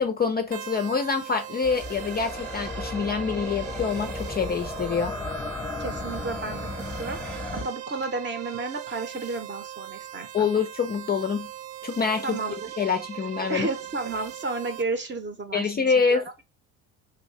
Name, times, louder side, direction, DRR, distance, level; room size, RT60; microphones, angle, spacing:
voice 1, 0.0-5.1 10.3-11.5 11.8-12.4 12.8-13.7 15.5-16.3, left 5 dB, 25° left, 0.4 m, -26 dB
sound 1, 0.5-14.8, right 13 dB, 70° right, 0.6 m, -40 dB
sound 2, 1.6-7.6, left 2 dB, 5° left, 0.9 m, -34 dB
voice 2, 5.8-10.5 12.2-12.7 13.5-15.7 16.1-16.2, right 3 dB, 25° right, 0.8 m, -32 dB
2.8 x 2.5 x 3.2 m
supercardioid pair, 75°, 40 cm